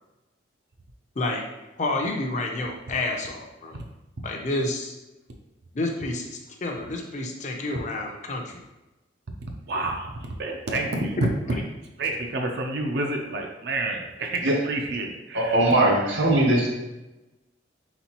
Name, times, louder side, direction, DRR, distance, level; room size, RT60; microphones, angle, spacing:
voice 1, 1.8-3.8 4.2-4.9 5.7-8.6 11.2-11.6, left 2 dB, 40° left, 2 dB, 0.5 m, -29 dB
voice 2, 9.7-11.2 12.0-15.6 16.1-16.2, right 2 dB, 55° right, 2 dB, 0.5 m, -29 dB
voice 3, 15.3-16.7, right 1 dB, 75° right, -1 dB, 1.1 m, -20 dB
4.2 x 3.8 x 2.9 m, 1.0 s
head